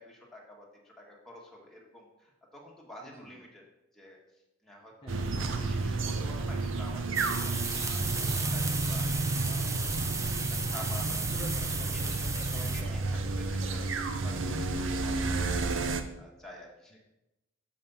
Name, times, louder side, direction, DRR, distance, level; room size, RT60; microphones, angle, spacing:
voice 1, 0.0-3.6 3.9-9.7 10.5-11.2 11.9-12.4 12.7-15.6 16.2-17.0, left 1 dB, ahead, -3 dB, 1.6 m, -49 dB
voice 2, 5.0-5.3 11.3-11.9 12.4-13.1 13.4-14.0, equal, 25° left, -4 dB, 1.0 m, -47 dB
sound 1, 5.1-16.0, right 3 dB, 70° right, 0.7 m, -31 dB
sound 2, 7.1-12.8, right 4 dB, 15° right, 0.5 m, -35 dB
6.8 x 5.4 x 5.5 m, 0.94 s
head